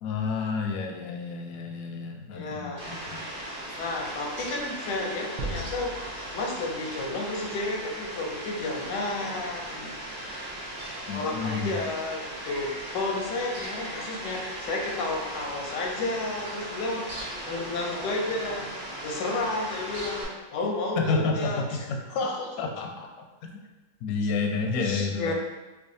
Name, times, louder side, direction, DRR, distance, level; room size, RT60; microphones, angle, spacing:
voice 1, 0.0-3.3 3.7-3.8 11.1-11.8 21.0-22.0 22.6-23.6 24.0-25.3, left 4 dB, 70° left, 2 dB, 0.9 m, -30 dB
voice 2, 2.3-2.8 3.8-6.0 6.3-9.9 11.1-17.1 17.5-18.7 19.0-22.7 24.7-25.3, left 2 dB, 90° left, 0 dB, 1.3 m, -32 dB
Fowl, 2.8-20.2, right 1 dB, 35° right, 1.2 m, -38 dB
sound 1, 5.4-7.2 7.5-7.6, right 2 dB, 75° right, 1.1 m, -38 dB
4.7 x 2.3 x 2.6 m, 1.2 s
omnidirectional pair, 1.8 m